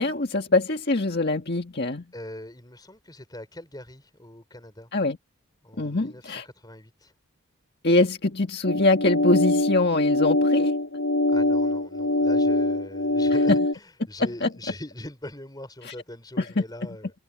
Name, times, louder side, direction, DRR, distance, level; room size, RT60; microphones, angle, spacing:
voice 1, 0.0-2.0 4.9-5.2 5.8-6.5 7.8-10.7 14.2-14.5 15.8-15.9 16.4-16.5, left 2 dB, 50° left, 1.7 m, -23 dB
voice 2, 2.1-4.9 5.6-7.1 11.3-17.1, left 1 dB, 20° left, 4.7 m, -42 dB
sound 1, 8.7-13.7, left 2 dB, 80° left, 2.7 m, -23 dB
head